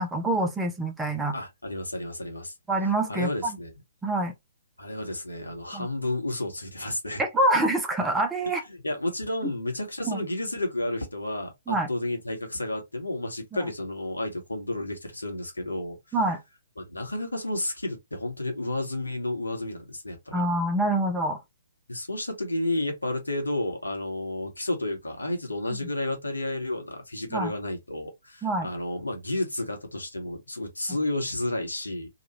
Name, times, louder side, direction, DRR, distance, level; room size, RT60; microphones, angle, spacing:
voice 1, 0.0-1.4 2.7-3.5 4.0-4.3 5.7-5.9 7.2-8.6 9.4-9.5 10.0-10.2 11.7-11.9 16.1-16.4 20.3-21.4 27.3-27.5 28.4-28.7, right 1 dB, 10° right, 0.6 m, -26 dB
voice 2, 1.3-2.5 3.1-3.7 4.8-7.2 8.7-16.0 16.8-20.4 21.9-32.1, left 1 dB, 80° left, 1.2 m, -31 dB
2.9 x 2.4 x 3.0 m
figure-of-eight pair, 125°, 0 cm